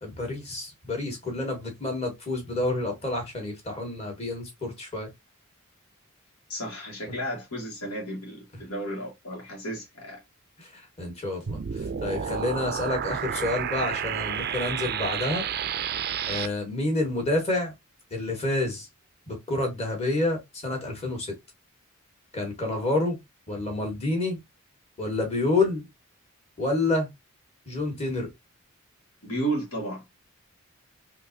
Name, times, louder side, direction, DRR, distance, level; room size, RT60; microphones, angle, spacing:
voice 1, 0.0-5.1 10.6-15.4 16.3-17.7 18.1-18.9 19.3-21.3 22.3-23.2 23.5-24.4 25.0-25.9 26.6-27.1 27.7-28.3, left 2 dB, 30° left, 1.6 m, -28 dB
voice 2, 6.5-10.2 29.2-30.0, right 1 dB, 85° left, 1.8 m, -33 dB
sound 1, 11.5-16.5, right 8 dB, 45° right, 0.4 m, -30 dB
3.7 x 2.9 x 2.8 m
head